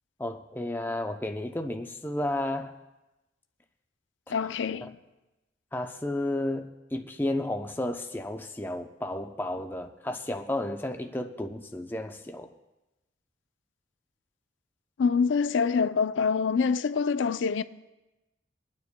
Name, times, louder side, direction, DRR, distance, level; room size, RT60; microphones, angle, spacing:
voice 1, 0.2-2.8 5.7-12.5, left 1 dB, 10° left, 0.5 m, -32 dB
voice 2, 4.3-5.0 15.0-17.6, left 5 dB, 75° left, 0.4 m, -25 dB
27.0 x 9.5 x 2.2 m
head